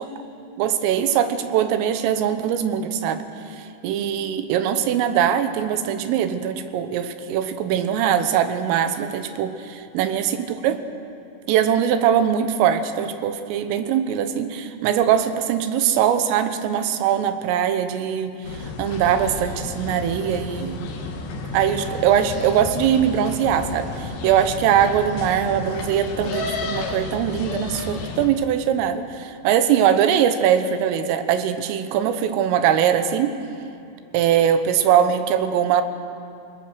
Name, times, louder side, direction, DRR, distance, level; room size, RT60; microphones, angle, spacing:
voice 1, 0.6-3.3 3.8-10.8 11.5-18.4 18.8-20.9 21.5-33.4 34.1-35.8, right 9 dB, 85° right, 9 dB, 3.7 m, -21 dB
sound 1, 18.4-28.3, left 3 dB, 65° left, 3.7 m, -32 dB
28.5 x 19.5 x 6.4 m, 2.7 s
omnidirectional pair, 5.8 m